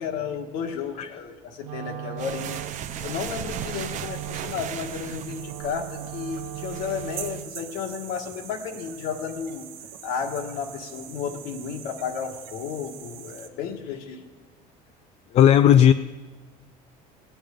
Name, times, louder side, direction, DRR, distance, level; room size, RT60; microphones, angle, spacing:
voice 1, 0.0-2.6 3.0-9.7 10.0-14.2, left 6 dB, 80° left, 4 dB, 1.5 m, -33 dB
Wind instrument woodwind instrument, 1.6-7.6, right 13 dB, 85° right, 0.8 m, -38 dB
sound 1, 2.2-7.4, right 9 dB, 50° right, 0.6 m, -37 dB
sound 2, 2.4-13.5, right 9 dB, 65° right, 1.1 m, -43 dB
voice 2, 15.3-15.9, left 10 dB, 40° left, 10 dB, 0.4 m, -15 dB
17.5 x 9.0 x 5.2 m, 1.4 s
cardioid pair, 115°, 16 cm